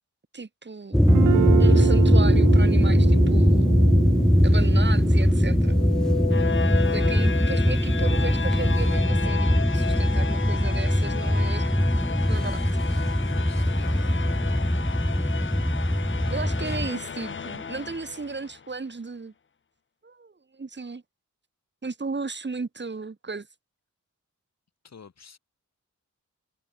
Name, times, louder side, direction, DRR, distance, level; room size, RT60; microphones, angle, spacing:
voice 1, 0.3-1.0 1.6-3.8 4.4-5.8 6.9-11.7 12.3-12.6 16.3-19.3 20.0-21.0 21.8-23.5, right 4 dB, 35° right, 3.8 m, -35 dB
sound 1, 0.9-16.9, equal, ahead, 0.5 m, -21 dB
Guitar, 1.1-8.8, right 12 dB, 90° right, 0.5 m, -30 dB
sound 2, 5.6-18.6, left 6 dB, 40° left, 0.8 m, -33 dB
voice 2, 12.3-12.8 13.3-14.2 16.2-17.2 24.8-25.4, left 6 dB, 55° left, 3.5 m, -49 dB
wide cardioid pair, 120°, 31 cm